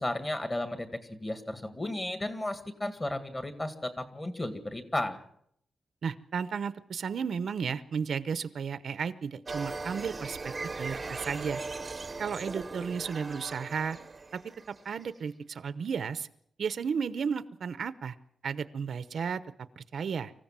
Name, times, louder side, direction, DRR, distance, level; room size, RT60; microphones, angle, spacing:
voice 1, 0.0-0.9 1.2-5.2, left 1 dB, 20° left, 8 dB, 2.0 m, -34 dB
voice 2, 6.0-10.5 10.8-11.6 12.2-14.0 14.3-14.4 14.7-16.3 16.6-18.2 18.4-19.4 19.8-20.3, right 6 dB, 65° right, 13 dB, 0.8 m, -33 dB
sound 1, 9.5-15.0, right 3 dB, 25° right, 0.9 m, -39 dB
25.0 x 15.5 x 7.5 m, 0.70 s
wide cardioid pair, 155°, 0 cm